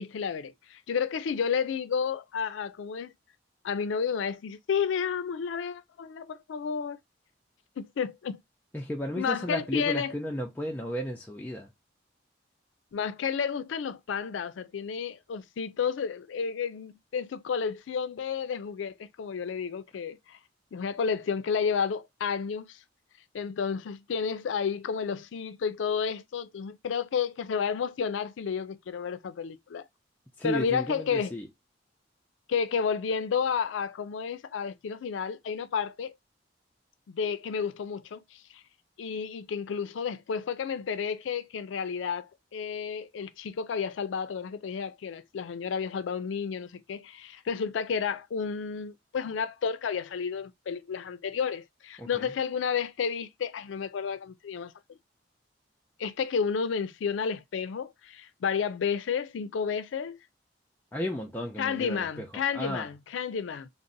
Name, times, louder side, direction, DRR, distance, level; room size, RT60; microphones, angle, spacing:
voice 1, 0.0-3.1 3.6-7.0 7.8-8.4 9.2-10.1 12.9-20.4 20.7-22.8 23.3-29.8 30.4-31.3 32.5-36.2 37.1-38.6 39.0-54.7 56.0-60.2 61.6-63.7, left 6 dB, 85° left, 0.4 m, -31 dB
voice 2, 8.7-11.7 30.4-31.5 52.0-52.3 60.9-62.9, equal, 10° left, 0.4 m, -34 dB
2.5 x 2.0 x 3.8 m
head